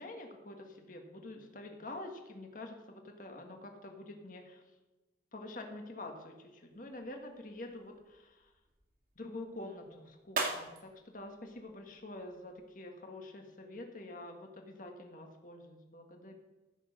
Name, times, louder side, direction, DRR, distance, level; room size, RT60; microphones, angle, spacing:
voice 1, 0.0-4.6 5.3-8.5 9.1-16.4, left 2 dB, 50° left, 3 dB, 1.7 m, -47 dB
sound 1, 6.7-12.7, right 3 dB, 50° right, 2.2 m, -44 dB
15.0 x 6.3 x 6.5 m, 1.1 s
head